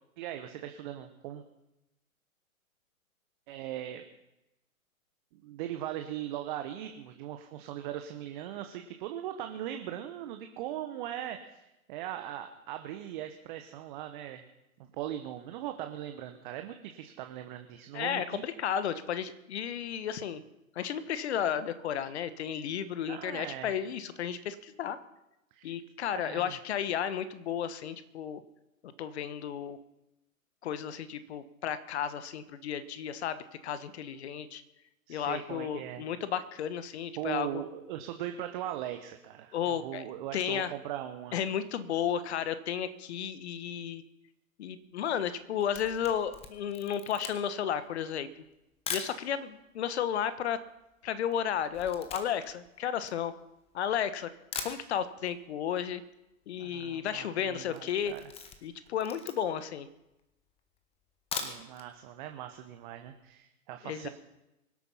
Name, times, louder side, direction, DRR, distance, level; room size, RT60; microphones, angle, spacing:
voice 1, 0.2-1.4 3.5-4.0 5.3-14.4 14.8-18.4 23.1-23.7 25.5-25.7 26.1-26.5 35.1-36.0 37.2-41.4 56.6-58.2 61.4-64.1, right 12 dB, 35° right, 6 dB, 1.2 m, -39 dB
voice 2, 17.9-20.4 20.7-25.0 25.6-28.4 29.0-29.8 30.6-33.4 33.6-34.6 35.1-37.6 39.5-40.0 40.3-40.7 41.3-44.0 44.6-48.4 48.9-50.6 51.0-53.3 53.7-54.3 54.6-56.0 56.5-58.1 58.6-59.9 63.8-64.1, left 9 dB, 50° left, 13 dB, 1.3 m, -33 dB
Camera, 45.3-49.2 49.9-50.0 50.2-53.8 54.2-54.3 54.5-55.4 55.6-55.7 56.0-56.1 56.3-56.7 57.1-57.3 57.7-59.7 60.2-60.3 61.1-61.9 62.2-62.3 62.7-62.8, left 6 dB, 15° left, 1.3 m, -41 dB
24.0 x 8.3 x 5.7 m, 0.92 s
figure-of-eight pair, 125°, 43 cm